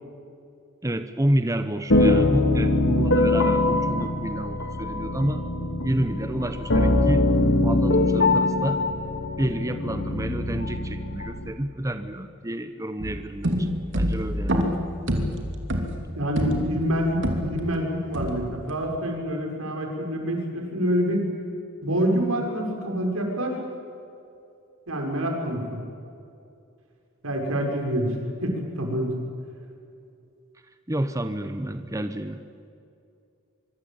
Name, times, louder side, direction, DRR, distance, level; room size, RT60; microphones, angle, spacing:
voice 1, 0.8-5.4 5.8-7.3 7.6-8.8 9.4-13.7 13.9-14.6 15.2-15.3 30.9-32.4, right 1 dB, 15° right, 9 dB, 0.9 m, -29 dB
sound 1, 1.9-11.5, left 2 dB, 55° left, 2.2 m, -23 dB
sound 2, 13.0-17.8 18.1-18.7, equal, 60° right, 3.0 m, -27 dB
voice 2, 16.2-21.3 21.8-23.6 24.9-25.8 27.2-28.1 28.4-29.1, equal, 85° right, 1 dB, 5.9 m, -26 dB
24.5 x 23.5 x 8.8 m, 2.5 s
head